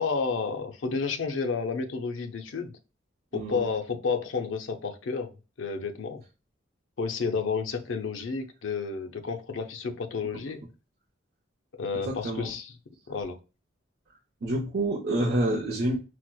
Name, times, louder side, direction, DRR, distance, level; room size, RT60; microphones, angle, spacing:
voice 1, 0.0-2.7 3.3-5.3 5.6-6.2 7.0-10.6 11.8-12.7 13.1-13.4, left 5 dB, 75° left, 0.5 m, -31 dB
voice 2, 3.3-3.7 11.9-12.5 14.4-16.0, right 1 dB, 55° right, 0.6 m, -28 dB
4.3 x 2.0 x 2.2 m
head